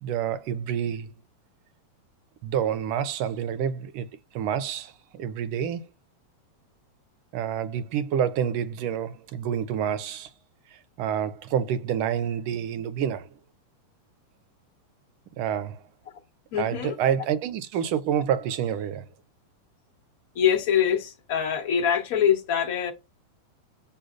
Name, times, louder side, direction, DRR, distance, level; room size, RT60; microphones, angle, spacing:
voice 1, 0.0-1.1 2.4-4.1 4.3-5.8 7.3-10.3 10.7-13.3 15.4-15.8 16.6-19.1, right 9 dB, 45° right, 0.5 m, -28 dB
voice 2, 16.5-17.0 20.3-22.9, left 8 dB, 55° left, 1.3 m, -24 dB
6.4 x 2.2 x 2.6 m
supercardioid pair, 155°, 0 cm